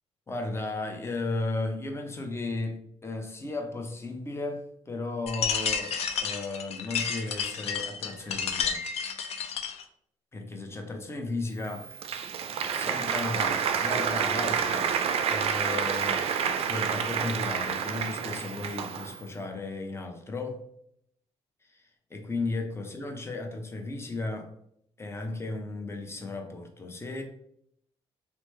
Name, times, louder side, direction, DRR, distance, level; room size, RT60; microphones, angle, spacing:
voice 1, 0.3-8.8 10.3-11.9 12.7-14.9 15.3-16.3 16.7-20.6 21.6-24.5 25.0-27.2, left 2 dB, 20° left, 3 dB, 0.6 m, -35 dB
Beer Bottle Lights, 5.3-9.8, left 6 dB, 65° left, 0.4 m, -31 dB
Applause, 11.6-19.3, right 7 dB, 60° right, 0.4 m, -29 dB
3.0 x 2.1 x 3.2 m, 0.71 s
supercardioid pair, 60°, 12 cm